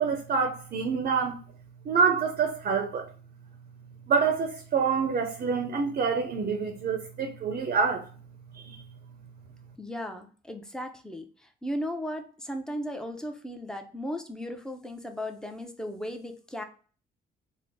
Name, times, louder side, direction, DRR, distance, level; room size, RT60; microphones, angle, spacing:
voice 1, 0.0-1.4 1.8-3.1 4.1-8.1 8.5-8.8, right 5 dB, 45° right, 0.6 m, -27 dB
voice 2, 9.8-11.2 11.6-16.6, equal, 5° left, 0.6 m, -36 dB
3.7 x 2.1 x 3.5 m
cardioid pair, 90°, 20 cm